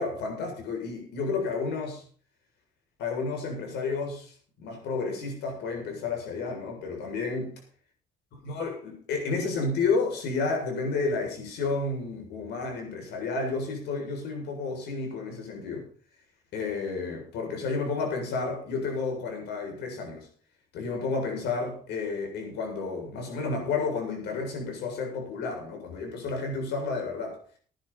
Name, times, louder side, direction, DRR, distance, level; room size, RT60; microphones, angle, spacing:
voice 1, 0.0-2.0 3.0-7.5 8.4-15.8 16.5-20.3 20.7-27.4, left 4 dB, 80° left, 3 dB, 7.5 m, -31 dB
19.0 x 10.5 x 4.4 m, 0.40 s
cardioid pair, 110°, 17 cm